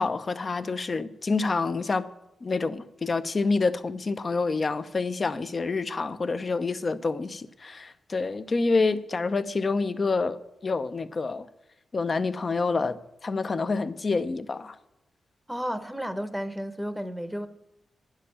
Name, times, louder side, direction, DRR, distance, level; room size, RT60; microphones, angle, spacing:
voice 1, 0.0-2.1 2.4-11.5 11.9-14.8, left 3 dB, 40° left, 0.7 m, -27 dB
voice 2, 15.5-17.5, equal, 5° right, 0.9 m, -32 dB
10.5 x 6.6 x 8.8 m
cardioid pair, 90°, 0 cm